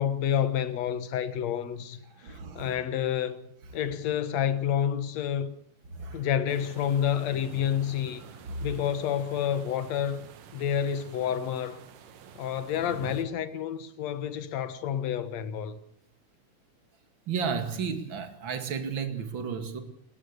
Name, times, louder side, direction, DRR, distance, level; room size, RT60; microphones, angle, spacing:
voice 1, 0.0-2.0 2.3-3.4 3.7-5.6 6.1-8.2 8.6-10.3 10.5-11.8 12.4-15.8, left 9 dB, 60° left, 2.1 m, -29 dB
voice 2, 2.1-2.8 5.9-6.3 8.3-8.7 17.3-19.8, right 6 dB, 35° right, 2.5 m, -33 dB
sound 1, 6.5-13.2, right 7 dB, 65° right, 2.9 m, -47 dB
29.5 x 15.0 x 6.9 m
omnidirectional pair, 4.4 m